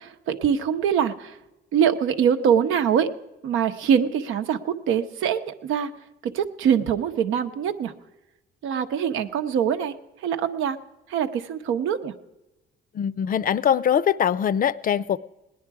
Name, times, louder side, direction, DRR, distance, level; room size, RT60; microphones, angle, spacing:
voice 1, 0.0-1.3 1.7-3.1 3.4-5.9 6.2-7.9 8.6-9.9 10.2-10.8 11.1-12.1, right 8 dB, 90° right, 0.8 m, -23 dB
voice 2, 12.9-15.2, left 9 dB, 45° left, 0.4 m, -22 dB
18.0 x 10.0 x 4.7 m
cardioid pair, 90°, 20 cm